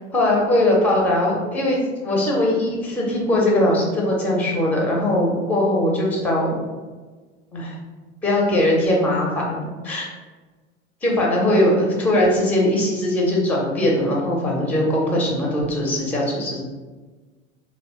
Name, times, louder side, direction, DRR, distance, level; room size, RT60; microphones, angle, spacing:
voice 1, 0.0-6.6 7.5-7.8 8.2-10.1 11.0-16.6, left 1 dB, 5° left, -2 dB, 0.4 m, -20 dB
2.8 x 2.0 x 2.8 m, 1.3 s
figure-of-eight pair, 80°, 38 cm